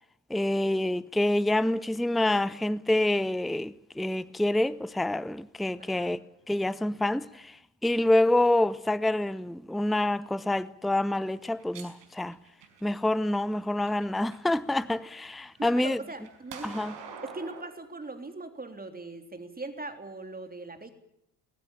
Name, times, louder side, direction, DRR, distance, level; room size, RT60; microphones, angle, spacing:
voice 1, 0.3-6.2 6.5-7.6 7.8-12.4 12.8-16.0 16.6-16.9, left 1 dB, ahead, 0.8 m, -27 dB
voice 2, 5.8-6.2 15.6-16.7 17.2-20.9, right 2 dB, 20° right, 3.5 m, -40 dB
sound 1, 11.3-13.1 13.7-14.5 14.9-17.6, right 5 dB, 60° right, 5.4 m, -46 dB
21.5 x 20.0 x 8.8 m
hypercardioid pair, 60°, 48 cm